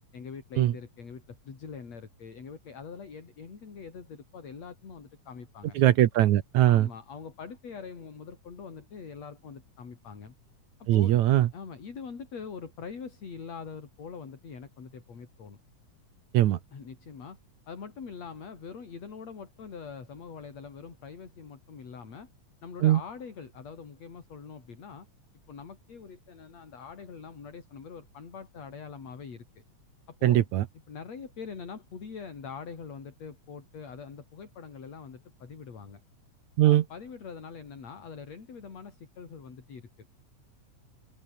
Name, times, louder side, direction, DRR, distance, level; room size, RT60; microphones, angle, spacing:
voice 1, 0.1-5.8 6.7-10.3 10.8-15.6 16.7-17.4 17.7-22.3 22.6-25.1 25.5-29.6 30.1-30.4 30.9-36.0 36.6-39.9, left 6 dB, 55° left, 4.9 m, -43 dB
voice 2, 5.8-6.9 10.9-11.5 16.3-16.6 22.8-23.0 30.2-30.6 36.6-36.8, right 13 dB, 70° right, 2.3 m, -21 dB
omnidirectional pair, 3.6 m